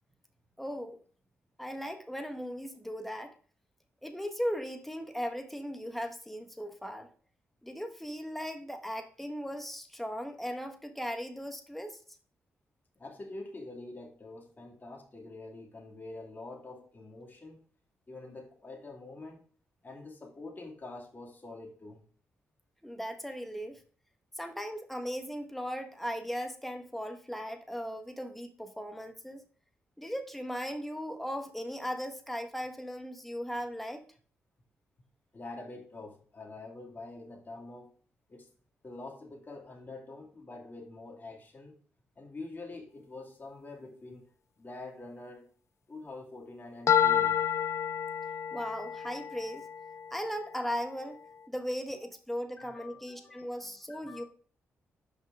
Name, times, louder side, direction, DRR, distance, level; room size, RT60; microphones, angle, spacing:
voice 1, 0.6-1.0 1.6-3.3 4.0-7.1 7.6-12.0 22.8-23.8 24.4-29.4 30.0-34.0 48.5-49.7 50.1-51.2 51.5-54.2, equal, 5° left, 1.3 m, -37 dB
voice 2, 13.0-17.6 18.1-19.4 19.8-22.0 35.3-37.9 38.3-38.5 38.8-41.7 42.2-44.3 44.6-45.5 45.9-47.4 51.9-52.1 52.6-54.2, left 2 dB, 35° left, 2.3 m, -46 dB
sound 1, 46.9-50.9, left 8 dB, 60° left, 0.4 m, -30 dB
6.0 x 5.5 x 3.5 m
supercardioid pair, 55°, 5 cm